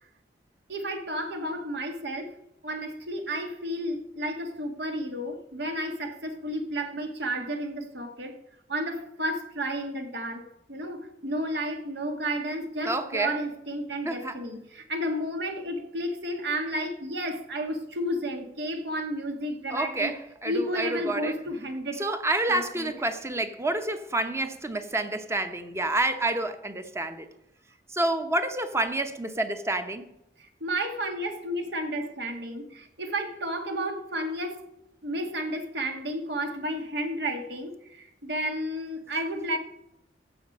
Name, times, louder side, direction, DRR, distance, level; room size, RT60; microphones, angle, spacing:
voice 1, 0.7-2.3 2.6-8.3 8.7-10.4 10.7-20.2 20.4-22.0 22.5-22.9 30.4-34.6 35.0-39.6, right 1 dB, 70° right, 1.7 m, -32 dB
voice 2, 12.8-13.3 14.1-14.4 19.7-21.3 22.0-27.3 27.9-30.0, right 2 dB, 15° right, 0.9 m, -28 dB
15.0 x 6.4 x 5.3 m
head